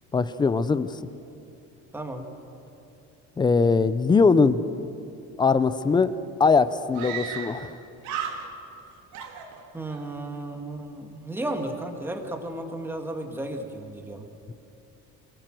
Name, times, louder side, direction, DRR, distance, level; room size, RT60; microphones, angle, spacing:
voice 1, 0.1-1.0 3.4-4.6 5.4-6.1 6.4-7.8 14.5-14.6, left 4 dB, 15° left, 14 dB, 0.5 m, -21 dB
voice 2, 1.9-2.3 9.7-14.3, right 1 dB, 5° right, 4 dB, 1.8 m, -34 dB
Screaming, 5.8-5.9 6.1-6.2 6.9-7.7 8.0-8.8 9.1-10.0, right 7 dB, 75° right, 3.0 m, -35 dB
27.5 x 19.0 x 7.7 m, 2.9 s
cardioid pair, 170°, 29 cm